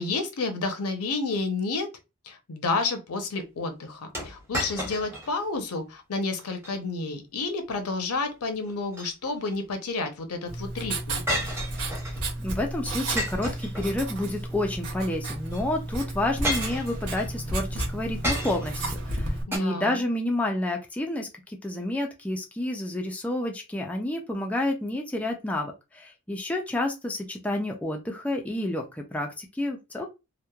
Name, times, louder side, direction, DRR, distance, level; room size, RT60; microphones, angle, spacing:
voice 1, 0.0-1.9 2.2-11.2 19.5-20.0, left 3 dB, 75° left, 6 dB, 0.6 m, -30 dB
sound 1, 4.1-5.3 5.7-5.8 6.4-6.8 8.7-9.5 11.3-12.3 13.2-14.3 15.5-15.6 16.4-17.3 18.2-18.8 19.5-19.6, equal, 10° right, 0.8 m, -32 dB
Writing, 10.5-19.4, right 2 dB, 70° right, 0.8 m, -32 dB
voice 2, 12.4-30.1, left 1 dB, 5° left, 1 dB, 0.3 m, -30 dB
2.9 x 2.1 x 2.2 m, 0.25 s
head